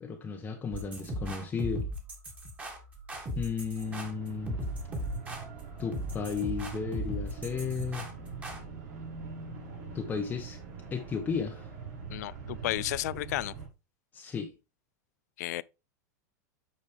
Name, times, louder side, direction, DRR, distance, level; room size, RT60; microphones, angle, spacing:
voice 1, 0.0-1.9 3.3-4.6 5.8-8.1 9.9-10.6 10.9-11.7 14.1-14.5, left 5 dB, 20° left, 0.9 m, -34 dB
sound 1, 0.7-8.6, equal, 15° right, 1.9 m, -38 dB
sound 2, 3.8-13.7, right 5 dB, 60° right, 4.5 m, -43 dB
voice 2, 12.1-13.5 15.4-15.6, left 16 dB, 70° left, 0.4 m, -33 dB
8.3 x 5.1 x 3.4 m
supercardioid pair, 145°, 9 cm